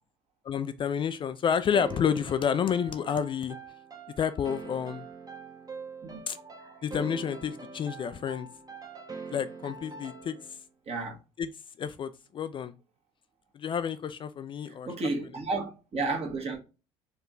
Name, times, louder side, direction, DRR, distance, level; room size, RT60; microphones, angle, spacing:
voice 1, 0.4-3.6 4.2-5.1 6.3-6.4 6.8-8.5 9.3-10.4 11.4-11.5 11.8-12.7 13.5-14.9, left 7 dB, 35° left, 0.4 m, -29 dB
sound 1, 1.7-10.6, right 4 dB, 25° right, 1.1 m, -44 dB
voice 2, 10.9-11.2 14.8-16.6, right 3 dB, 40° right, 1.6 m, -32 dB
4.7 x 2.8 x 3.7 m
figure-of-eight pair, 55°, 15 cm